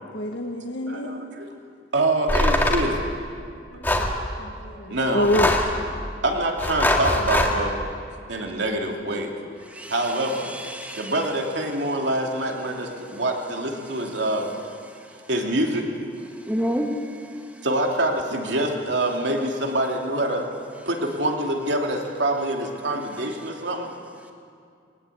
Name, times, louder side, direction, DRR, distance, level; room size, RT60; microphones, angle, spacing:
voice 1, 0.1-1.1 3.5-5.5 9.5-9.6, left 1 dB, 75° left, 1 dB, 1.6 m, -28 dB
voice 2, 0.8-1.5 1.9-3.0 4.7-5.3 6.2-7.8 8.3-9.3 9.9-10.5 11.0-14.5 15.3-15.9 17.6-20.5 20.8-23.9, right 1 dB, 75° right, 1 dB, 2.8 m, -25 dB
sound 1, 2.3-2.9 3.8-4.1 5.2-5.8 6.6-7.6, left 1 dB, 10° left, 1.9 m, -22 dB
voice 3, 10.4-11.2 16.5-17.1, equal, 10° right, 2 dB, 1.6 m, -28 dB
21.0 x 20.0 x 8.5 m, 2.3 s
head